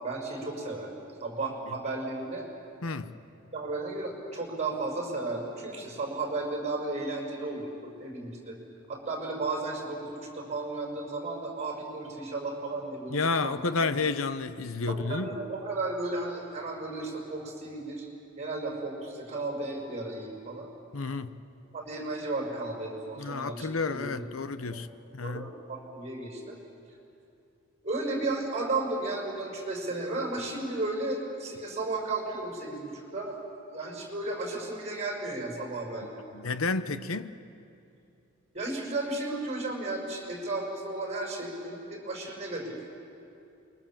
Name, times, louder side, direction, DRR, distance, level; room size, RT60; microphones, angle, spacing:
voice 1, 0.0-0.9 1.2-2.5 3.5-8.6 8.9-14.1 14.9-18.1 18.4-20.7 21.7-24.2 24.7-24.9 25.2-26.6 27.8-33.4 33.7-36.2 38.5-42.8, right 2 dB, 35° right, 5.5 m, -34 dB
voice 2, 2.8-3.2 13.1-15.3 20.9-21.4 23.2-24.9 25.1-25.5 36.3-37.4, left 4 dB, 70° left, 0.9 m, -31 dB
29.0 x 22.5 x 7.4 m
head